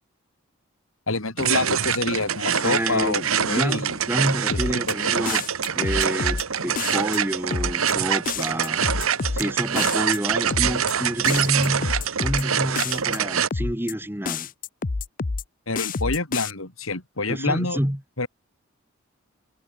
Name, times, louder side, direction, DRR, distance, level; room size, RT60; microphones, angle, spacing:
voice 1, 1.1-3.9 4.5-5.2 15.7-17.8 18.2-18.3, left 3 dB, 75° left, 3.9 m, -27 dB
sound 1, 1.4-13.5, right 8 dB, 85° right, 1.3 m, -25 dB
voice 2, 2.6-5.4 5.7-8.8 9.3-14.5 17.3-18.0, equal, 10° right, 2.2 m, -28 dB
sound 2, 4.5-4.9 5.3-6.4 6.8-7.2 7.5-7.9 8.3-9.4 9.7-10.2 10.5-10.9 11.3-12.4 12.8-13.2 13.5-13.9 14.2-15.4 15.7-16.5, left 4 dB, 40° left, 0.6 m, -28 dB
head